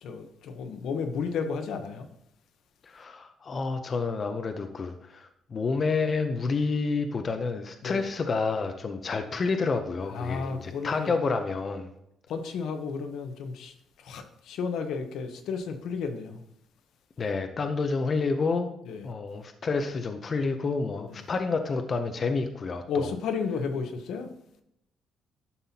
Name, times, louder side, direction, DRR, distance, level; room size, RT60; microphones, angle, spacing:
voice 1, 0.0-2.1 7.8-8.0 10.1-11.1 12.3-16.4 18.9-19.1 21.1-21.2 22.9-24.3, left 5 dB, 75° left, 0.9 m, -33 dB
voice 2, 2.8-11.9 17.2-18.8 19.0-23.1, left 4 dB, 35° left, 0.6 m, -29 dB
11.0 x 5.5 x 2.8 m
cardioid pair, 145°, 0 cm